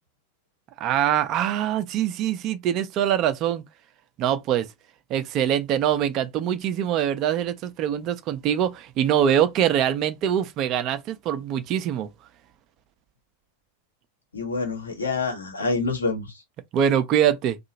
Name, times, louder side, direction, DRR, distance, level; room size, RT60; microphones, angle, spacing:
voice 1, 0.8-3.6 4.2-4.7 5.1-12.1 16.7-17.6, right 9 dB, 35° right, 0.5 m, -23 dB
voice 2, 14.3-16.4, left 3 dB, 75° left, 1.1 m, -27 dB
2.8 x 2.3 x 2.7 m
figure-of-eight pair, 90°, 0 cm